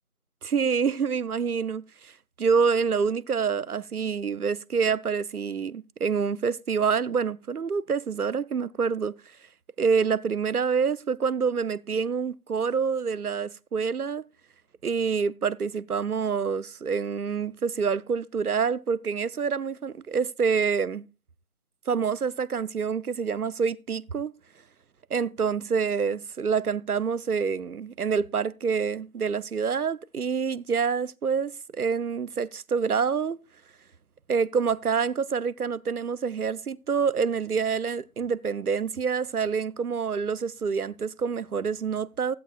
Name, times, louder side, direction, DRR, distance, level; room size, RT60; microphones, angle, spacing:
voice 1, 0.4-2.1 2.4-9.1 9.8-14.2 14.8-21.1 21.9-24.3 25.1-33.4 34.3-42.4, right 6 dB, 85° right, 0.7 m, -27 dB
15.5 x 12.0 x 2.3 m
figure-of-eight pair, 165°, 44 cm